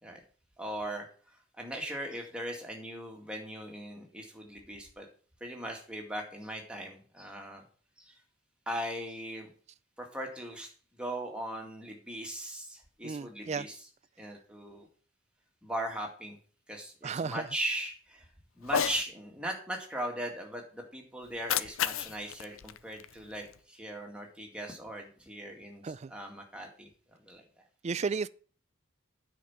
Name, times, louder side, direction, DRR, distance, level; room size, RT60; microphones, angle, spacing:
voice 1, 0.6-5.1 5.4-7.6 8.0-8.1 8.7-9.5 10.0-10.7 11.0-13.9 14.2-14.9 15.6-16.4 16.7-18.3 18.6-26.9 27.2-27.4, right 1 dB, 5° right, 2.1 m, -39 dB
voice 2, 13.0-13.7 17.0-17.5 25.8-26.1 27.8-28.3, right 5 dB, 35° right, 0.3 m, -33 dB
Cat, 18.6-19.0 21.2-23.6, left 8 dB, 85° left, 0.6 m, -33 dB
9.3 x 5.3 x 7.2 m
head